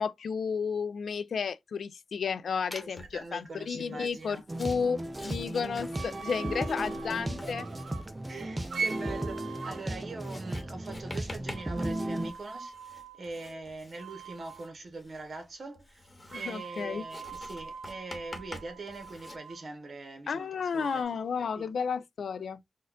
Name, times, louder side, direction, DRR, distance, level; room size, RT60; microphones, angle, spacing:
voice 1, 0.0-7.7 16.3-17.0 20.3-22.6, left 6 dB, 80° left, 0.3 m, -32 dB
Writing, 2.7-3.2 3.9-19.4, left 2 dB, 35° left, 1.0 m, -48 dB
voice 2, 2.8-4.4 6.6-7.1 8.3-16.1 16.3-21.2 21.6-21.7, right 3 dB, 60° right, 1.2 m, -43 dB
sound 1, 4.5-12.3, right 1 dB, 25° right, 0.5 m, -35 dB
sound 2, 5.9-8.1 8.7-9.9 11.5-13.6 14.0-14.7 16.3-19.6 20.7-21.0, right 5 dB, 85° right, 0.7 m, -41 dB
4.2 x 2.4 x 2.4 m
cardioid pair, 60°, 0 cm